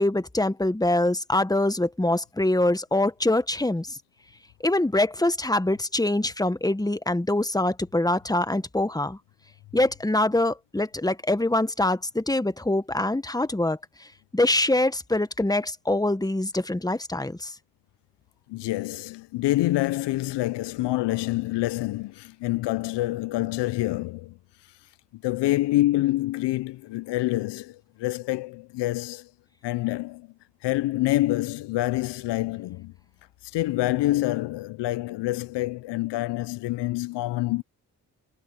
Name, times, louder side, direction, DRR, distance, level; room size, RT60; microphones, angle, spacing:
voice 1, 0.0-4.0 4.6-9.2 9.7-13.8 14.3-17.5, left 1 dB, 10° left, 1.6 m, -24 dB
voice 2, 18.5-24.4 25.1-29.3 29.6-30.3 30.6-32.9 33.4-37.6, left 17 dB, 75° left, 0.9 m, -27 dB
hypercardioid pair, 40°, 42 cm